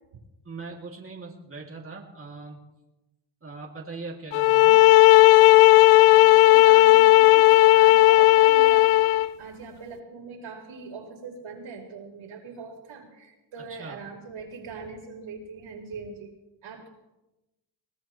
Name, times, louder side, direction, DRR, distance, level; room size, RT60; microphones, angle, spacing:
voice 1, 0.4-2.6 3.4-4.9 13.7-14.0, right 3 dB, 25° right, -2 dB, 2.8 m, -40 dB
sound 1, 4.3-9.3, left 18 dB, 90° left, 0.6 m, -15 dB
voice 2, 6.1-8.9 9.4-16.3 16.6-16.9, right 4 dB, 70° right, 0 dB, 4.8 m, -41 dB
22.5 x 18.0 x 3.3 m, 1.0 s
cardioid pair, 85°, 49 cm